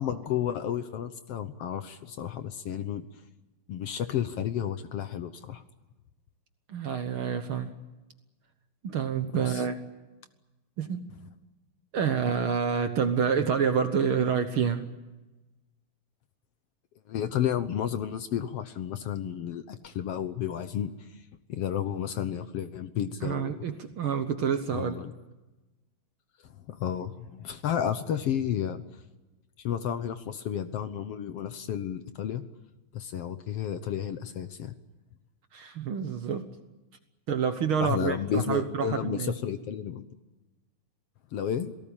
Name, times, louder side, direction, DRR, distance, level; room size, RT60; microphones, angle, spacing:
voice 1, 0.0-3.1 3.7-5.6 9.4-9.6 17.1-20.9 21.5-23.5 24.7-25.1 26.7-28.8 29.6-32.4 32.9-34.8 37.8-40.1 41.3-41.7, left 9 dB, 65° left, 11 dB, 1.8 m, -32 dB
voice 2, 6.7-7.7 8.8-9.8 10.8-11.1 11.9-14.9 23.2-25.0 35.5-36.5 37.3-39.3, right 7 dB, 60° right, 8 dB, 1.6 m, -28 dB
27.5 x 18.0 x 8.8 m, 1.1 s
omnidirectional pair, 3.3 m